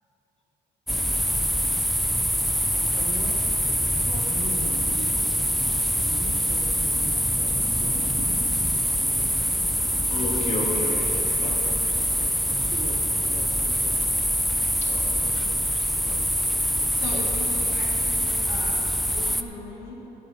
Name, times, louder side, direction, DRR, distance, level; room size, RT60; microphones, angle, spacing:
sound 1, 0.9-19.4, equal, ahead, 0.4 m, -24 dB
voice 1, 2.7-3.4 3.8-5.5 6.0-8.3 8.7-9.5 12.2-14.2, right 2 dB, 45° right, 1 dB, 1.7 m, -41 dB
voice 2, 10.1-11.8 14.8-15.3, left 2 dB, 45° left, -2 dB, 2.6 m, -32 dB
voice 3, 16.9-20.1, left 3 dB, 80° left, -1 dB, 2.2 m, -38 dB
17.5 x 6.7 x 5.2 m, 3.0 s
cardioid pair, 110°, 17 cm